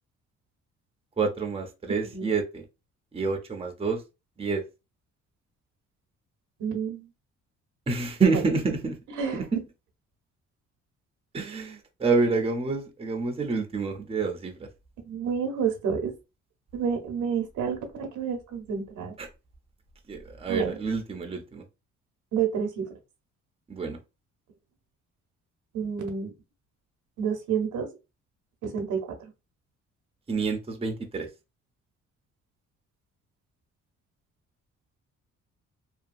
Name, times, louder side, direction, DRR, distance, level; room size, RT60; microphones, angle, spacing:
voice 1, 1.2-2.6 3.1-4.0 4.4-4.6 7.9-9.0 9.3-9.4 11.3-14.6 19.2-19.3 20.1-21.6 23.7-24.0 30.3-31.3, right 4 dB, 20° right, 0.6 m, -28 dB
voice 2, 6.6-7.1 8.3-8.4 9.1-9.6 15.0-16.1 16.7-19.1 20.5-20.8 22.3-22.9 25.7-26.3 27.2-27.9 28.6-29.3, right 7 dB, 80° right, 0.8 m, -29 dB
2.7 x 2.2 x 2.5 m
cardioid pair, 90°, 30 cm